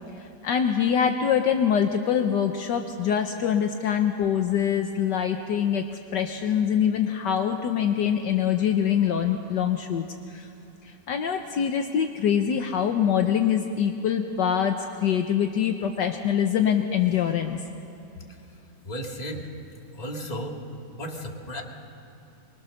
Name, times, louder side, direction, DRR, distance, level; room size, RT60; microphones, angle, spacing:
voice 1, 0.4-5.8 6.1-10.5 10.8-17.6, left 8 dB, 70° left, 5 dB, 1.5 m, -24 dB
voice 2, 18.8-19.5 19.9-20.6 21.0-21.6, equal, 20° left, 1 dB, 2.1 m, -34 dB
24.0 x 22.5 x 6.5 m, 2.8 s
omnidirectional pair, 2.1 m